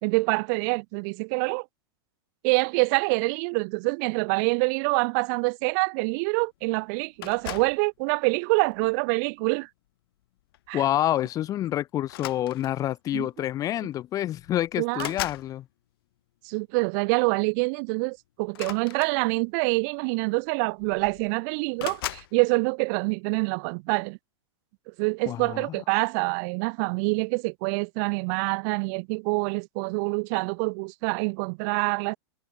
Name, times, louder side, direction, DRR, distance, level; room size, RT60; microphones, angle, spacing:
voice 1, 0.0-1.6 2.4-9.7 10.7-10.8 13.1-13.3 14.8-15.1 16.4-24.2 24.9-32.2, right 35 dB, 40° right, 2.8 m, -26 dB
sound 1, 7.2-7.8 8.7-9.0 10.5-10.7 11.0-11.2 12.0-12.9 13.9-14.0 14.3-15.5 18.5-19.6 20.5-20.6 20.8-21.3 21.8-22.3, left 16 dB, 55° left, 3.5 m, -37 dB
voice 2, 10.7-15.6 25.3-25.7, left 12 dB, 25° left, 1.5 m, -28 dB
hypercardioid pair, 150°, 14 cm